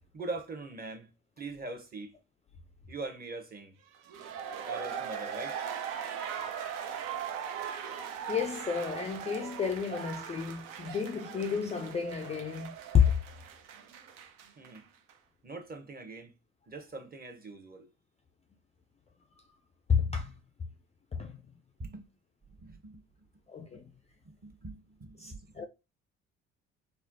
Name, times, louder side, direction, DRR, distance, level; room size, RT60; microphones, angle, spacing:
voice 1, 0.1-1.1 1.4-2.1 2.9-3.7 4.6-5.6 14.6-14.8 15.4-16.3 16.7-17.9 21.8-22.1 22.5-23.0 24.2-25.7, right 3 dB, 25° right, 0.8 m, -42 dB
sound 1, 3.9-14.8 15.1-15.2, right 8 dB, 65° right, 0.6 m, -40 dB
voice 2, 8.3-13.2 19.9-20.3 21.1-21.4 23.5-23.8 25.2-25.7, left 7 dB, 20° left, 0.4 m, -30 dB
4.2 x 2.0 x 2.6 m
hypercardioid pair, 50°, 35 cm